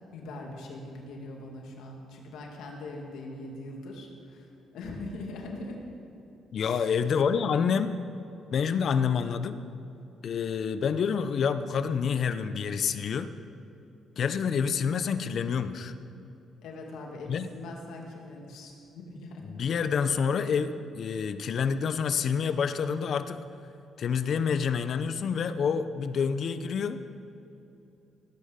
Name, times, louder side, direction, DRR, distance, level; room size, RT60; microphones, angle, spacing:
voice 1, 0.1-5.9 6.6-6.9 16.6-19.5, left 2 dB, 85° left, 0 dB, 2.2 m, -41 dB
voice 2, 6.5-8.0 8.5-9.6 10.2-13.3 14.2-15.9 17.3-17.5 19.4-23.4 24.0-27.0, left 6 dB, 60° left, 11 dB, 0.7 m, -28 dB
18.5 x 8.4 x 5.2 m, 2.9 s
cardioid pair, 90°, 0 cm